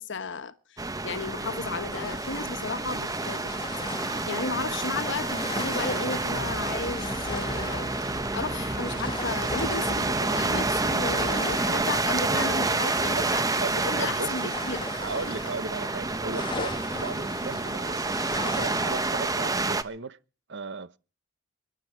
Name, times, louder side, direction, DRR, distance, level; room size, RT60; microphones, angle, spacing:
voice 1, 0.0-3.8 4.3-13.4 13.8-14.8, left 4 dB, 60° left, 1.2 m, -34 dB
sound 1, 0.8-19.8, right 3 dB, 20° right, 0.9 m, -29 dB
sound 2, 1.9-19.1, left 4 dB, 25° left, 1.4 m, -41 dB
sound 3, 6.2-11.4, left 1 dB, 5° left, 1.3 m, -37 dB
voice 2, 13.6-14.5 15.0-20.2 20.5-21.0, right 4 dB, 60° right, 1.0 m, -36 dB
24.0 x 11.5 x 4.6 m
head